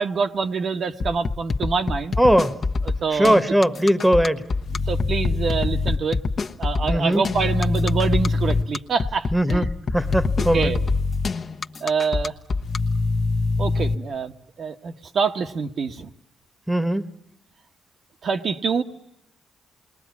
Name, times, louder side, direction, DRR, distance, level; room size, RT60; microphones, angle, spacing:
voice 1, 0.0-2.2 2.8-3.4 4.9-6.2 6.6-9.6 10.5-10.8 11.8-12.3 13.6-14.3 14.6-16.1 18.2-18.8, right 5 dB, 55° right, 5 dB, 1.3 m, -25 dB
sound 1, 1.0-12.8, left 4 dB, 45° left, 1.1 m, -25 dB
voice 2, 2.2-2.5 3.1-4.4 6.9-7.2 9.3-9.7 9.9-10.7 16.7-17.0, equal, 5° right, 12 dB, 1.3 m, -19 dB
sound 2, 4.6-6.0 7.3-8.6 10.0-11.3 12.6-13.9, left 3 dB, 70° left, 1.4 m, -24 dB
28.5 x 21.0 x 9.5 m, 0.85 s
cardioid pair, 100°, 0 cm